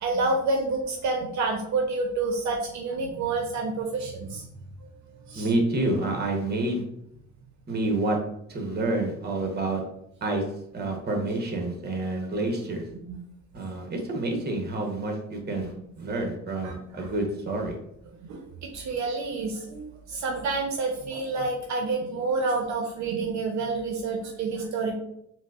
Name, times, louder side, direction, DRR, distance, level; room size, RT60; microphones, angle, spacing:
voice 1, 0.0-4.4 5.1-5.5 13.1-13.2 15.5-15.7 16.6-17.1 18.2-25.0, right 3 dB, 65° right, 1 dB, 0.6 m, -29 dB
voice 2, 5.4-6.8 7.7-8.2 8.5-9.8 10.2-10.4 10.7-12.8 13.5-17.8, right 2 dB, 35° right, 2 dB, 0.9 m, -28 dB
4.5 x 2.0 x 2.4 m, 0.76 s
cardioid pair, 90°, 30 cm